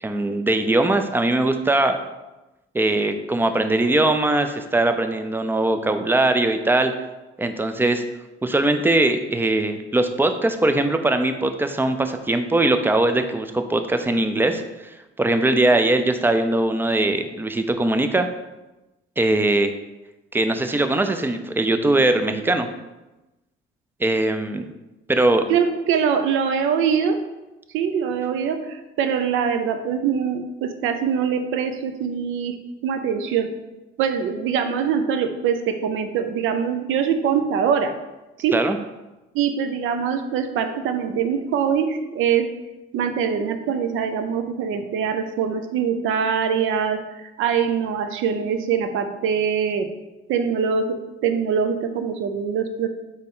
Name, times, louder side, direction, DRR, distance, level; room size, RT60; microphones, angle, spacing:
voice 1, 0.0-2.0 2.7-6.9 7.4-8.0 8.4-14.6 15.2-18.3 19.2-19.7 20.3-22.7 24.0-24.7 25.1-25.5 38.5-38.8, right 2 dB, 10° right, 8 dB, 0.4 m, -21 dB
voice 2, 25.5-27.2 27.7-32.5 32.8-33.5 34.0-37.9 38.4-38.6 39.3-42.5 42.9-49.9 50.3-51.0 51.2-52.9, right 7 dB, 85° right, 8 dB, 0.5 m, -23 dB
4.2 x 3.3 x 3.6 m, 1.0 s
cardioid pair, 90°, 20 cm